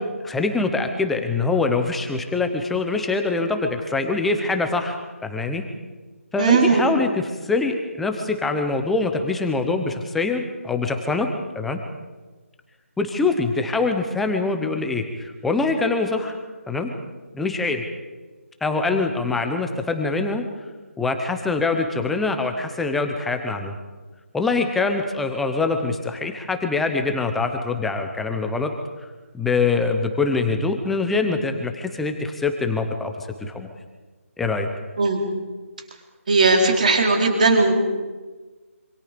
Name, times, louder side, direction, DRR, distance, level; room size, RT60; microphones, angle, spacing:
voice 1, 0.2-5.7 6.3-11.3 11.5-11.8 13.0-16.4 16.7-16.9 17.3-17.8 18.6-20.4 21.0-23.7 24.3-28.7 29.3-33.7 34.4-34.7, left 3 dB, ahead, 5 dB, 0.8 m, -24 dB
voice 2, 6.4-6.9 35.0-35.2 36.3-37.7, right 3 dB, 30° right, 2 dB, 4.2 m, -17 dB
27.0 x 26.0 x 5.2 m, 1.3 s
hypercardioid pair, 175°, 8 cm